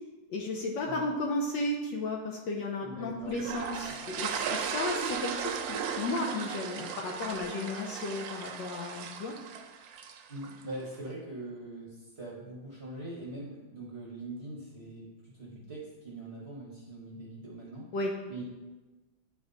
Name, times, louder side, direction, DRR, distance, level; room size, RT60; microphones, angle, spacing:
voice 1, 0.3-9.4 17.9-18.1, left 2 dB, 70° left, 1 dB, 1.1 m, -34 dB
voice 2, 2.8-3.4 10.3-17.9 18.3-18.4, right 2 dB, 40° right, -4 dB, 0.9 m, -42 dB
sound 1, 3.3-10.6, right 7 dB, 75° right, 1.2 m, -36 dB
9.4 x 3.5 x 3.8 m, 1.2 s
omnidirectional pair, 2.4 m